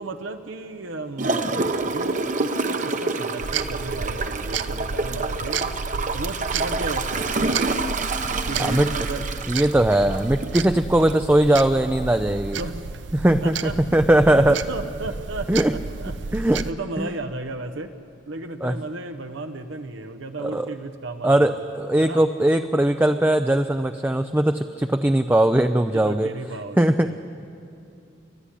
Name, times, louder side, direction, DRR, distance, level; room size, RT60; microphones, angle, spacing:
voice 1, 0.0-1.5 1.9-5.7 6.1-7.6 8.5-9.3 9.5-9.6 10.0-10.3 10.9-11.2 12.6-12.9 13.4-13.8 14.3-16.1 16.6-17.9 18.3-21.6 22.0-22.2 25.9-27.2, right 2 dB, 80° right, 7 dB, 0.9 m, -34 dB
Gurgling / Toilet flush, 1.2-10.6 11.1-11.2, right 3 dB, 40° right, 0.9 m, -27 dB
sound 1, 3.4-16.7, right 5 dB, 65° right, 0.6 m, -32 dB
voice 2, 9.5-12.6 13.1-14.6 15.5-15.7 16.3-16.6 17.0-17.1 18.6-18.8 20.4-20.7 21.2-26.3 26.8-27.2, right 1 dB, 10° right, 8 dB, 0.4 m, -20 dB
30.0 x 11.5 x 9.9 m, 2.5 s
head